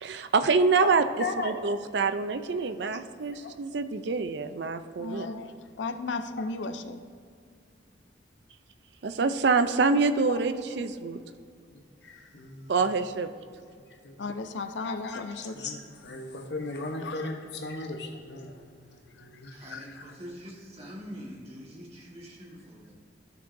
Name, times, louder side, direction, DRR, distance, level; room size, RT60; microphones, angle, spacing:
voice 1, 0.0-1.0 1.4-5.3 9.0-11.2 12.7-13.3, right 4 dB, 65° right, 10 dB, 0.5 m, -26 dB
voice 2, 1.2-1.5 2.2-2.3 2.6-3.0 3.3-3.8 4.6-4.7 5.1-5.6 6.1-6.5 10.0-10.4 11.7-12.7 14.0-14.2 14.8-19.5 19.8-19.9, left 3 dB, 65° left, 3 dB, 1.0 m, -38 dB
voice 3, 5.0-5.4 5.8-7.0 14.2-15.6 16.9-17.2 19.2-20.2, left 3 dB, 90° left, 9 dB, 0.5 m, -36 dB
voice 4, 19.5-22.9, equal, 35° right, -3 dB, 1.8 m, -44 dB
14.0 x 6.7 x 2.7 m, 2.2 s
head